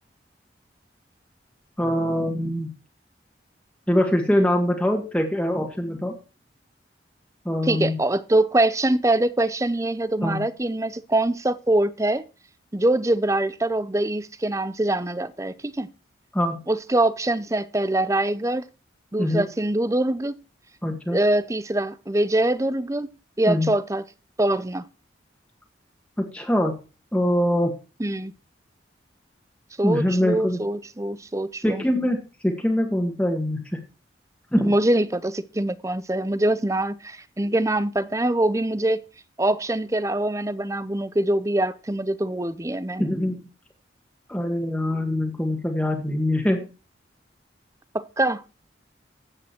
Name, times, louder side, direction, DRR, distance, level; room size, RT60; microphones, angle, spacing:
voice 1, 1.8-2.7 3.9-6.1 7.4-8.0 10.2-10.4 16.3-16.6 19.2-19.4 20.8-21.2 23.5-23.7 26.2-26.8 27.1-27.7 29.8-30.6 31.6-33.8 34.5-34.7 43.0-43.4 44.3-46.7, left 1 dB, 5° left, 1.8 m, -23 dB
voice 2, 7.6-12.2 12.7-15.9 16.7-18.6 19.1-20.3 21.1-23.1 23.4-24.0 24.4-24.9 28.0-28.3 29.8-31.8 34.6-39.0 39.4-43.1 47.9-48.4, right 1 dB, 15° right, 0.6 m, -23 dB
14.0 x 8.8 x 4.4 m
head